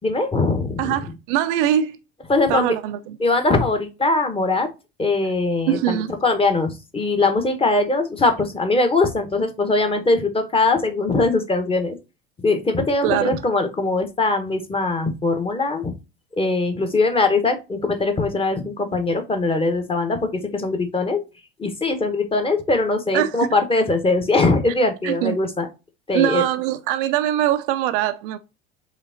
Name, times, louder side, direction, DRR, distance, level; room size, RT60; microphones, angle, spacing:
voice 1, 0.0-0.9 2.3-2.8 3.2-4.7 5.0-11.9 12.4-15.9 16.4-21.2 21.6-25.7 26.1-26.4, left 3 dB, 15° left, 1.2 m, -21 dB
voice 2, 0.8-2.0 2.5-3.2 5.7-6.1 13.0-13.3 23.1-23.5 25.0-25.4 26.1-28.4, right 12 dB, 55° right, 0.5 m, -22 dB
5.0 x 3.5 x 2.7 m
figure-of-eight pair, 70°, 31 cm